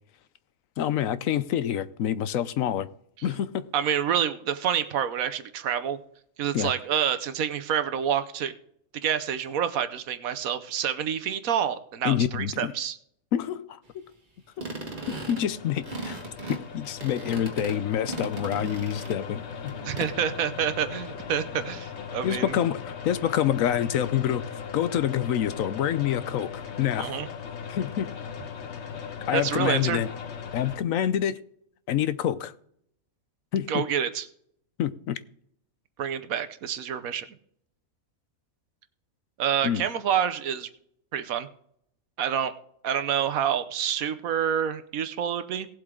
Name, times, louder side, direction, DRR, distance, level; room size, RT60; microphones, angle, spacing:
voice 1, 0.8-2.9 3.2-3.6 6.5-6.7 12.0-12.7 13.3-14.1 15.1-16.2 16.5-19.4 22.2-24.4 24.7-27.2 27.7-28.1 29.3-30.1 30.5-31.4 31.9-32.5 33.5-33.8 34.8-35.2 39.6-39.8, left 10 dB, 75° left, 1.0 m, -27 dB
voice 2, 3.7-6.0 6.4-8.5 9.0-13.0 19.8-22.5 27.0-27.3 29.3-30.0 33.7-34.3 36.0-37.3 39.4-40.7 41.1-41.5 42.2-42.5 42.8-45.7, right 8 dB, 80° right, 1.3 m, -27 dB
sound 1, 14.6-19.3 19.7-20.1, right 3 dB, 35° right, 1.8 m, -38 dB
sound 2, 14.8-30.8, left 7 dB, 55° left, 1.2 m, -39 dB
18.0 x 7.8 x 3.7 m
omnidirectional pair, 1.5 m